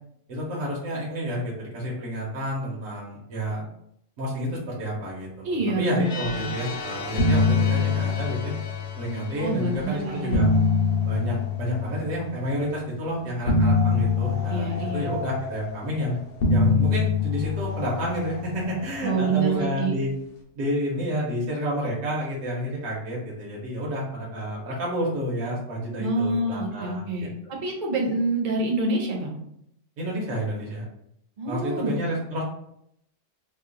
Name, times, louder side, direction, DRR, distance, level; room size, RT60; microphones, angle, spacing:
voice 1, 0.3-3.6 4.2-8.5 9.0-10.5 11.1-16.2 16.5-20.1 20.6-27.3 30.0-30.9 31.5-32.4, equal, 80° right, -4 dB, 1.2 m, -30 dB
voice 2, 5.4-6.5 9.4-10.4 14.5-15.1 19.0-19.9 26.0-27.3 27.6-29.4 31.4-32.0, right 2 dB, 45° right, 0 dB, 0.7 m, -26 dB
sound 1, 6.0-10.8, left 4 dB, 85° left, 1.0 m, -37 dB
sound 2, 6.5-6.8 7.0-9.3 10.0-12.4 13.5-15.9 16.4-19.0, left 4 dB, 55° left, 0.8 m, -24 dB
2.9 x 2.1 x 3.7 m, 0.74 s
omnidirectional pair, 1.3 m